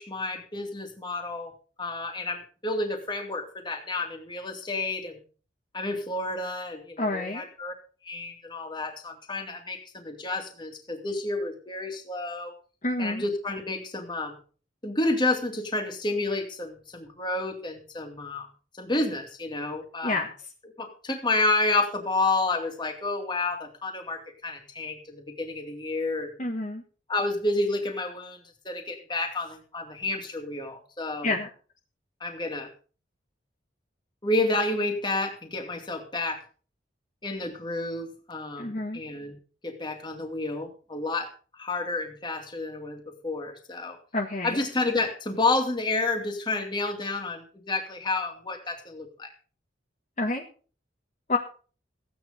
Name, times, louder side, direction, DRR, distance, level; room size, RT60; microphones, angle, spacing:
voice 1, 0.0-1.5 1.8-5.2 5.7-7.7 8.0-12.5 13.0-14.4 14.8-18.5 18.7-20.2 20.8-26.3 27.1-28.4 28.6-31.3 32.2-32.7 34.2-36.4 37.2-39.4 39.6-44.0 44.4-49.3, left 2 dB, 25° left, 3 dB, 2.6 m, -30 dB
voice 2, 7.0-7.5 12.8-13.2 20.0-20.3 26.4-26.8 31.2-31.5 38.6-39.0 44.1-44.6 50.2-50.4 51.3-51.4, left 2 dB, 40° left, 0 dB, 1.5 m, -28 dB
15.5 x 9.4 x 5.1 m, 0.39 s
head